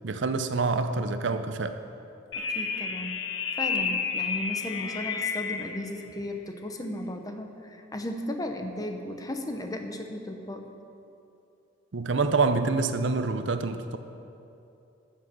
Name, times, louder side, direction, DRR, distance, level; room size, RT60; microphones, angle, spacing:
voice 1, 0.0-1.8 11.9-14.0, right 4 dB, 65° right, 9 dB, 0.6 m, -26 dB
sound 1, 2.3-5.8, left 5 dB, 70° left, 0.8 m, -30 dB
voice 2, 2.3-3.2 3.6-10.7, left 1 dB, 20° left, 5 dB, 0.8 m, -35 dB
14.0 x 7.5 x 6.1 m, 2.7 s
head